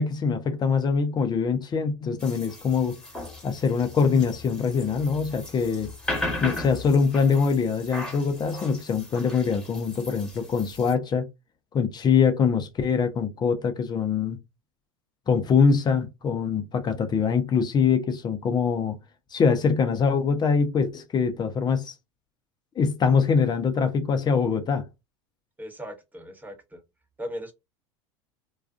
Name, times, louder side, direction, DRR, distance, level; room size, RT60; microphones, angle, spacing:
voice 1, 0.0-2.9 3.4-5.9 6.4-11.3 11.7-14.4 15.3-19.0 19.3-21.9 22.8-24.8, left 5 dB, 30° left, 0.5 m, -23 dB
sound 1, 2.2-10.9, left 2 dB, 5° left, 1.2 m, -37 dB
voice 2, 25.6-26.8 27.2-27.5, equal, 10° right, 0.8 m, -37 dB
2.3 x 2.3 x 2.4 m
hypercardioid pair, 85°, 15 cm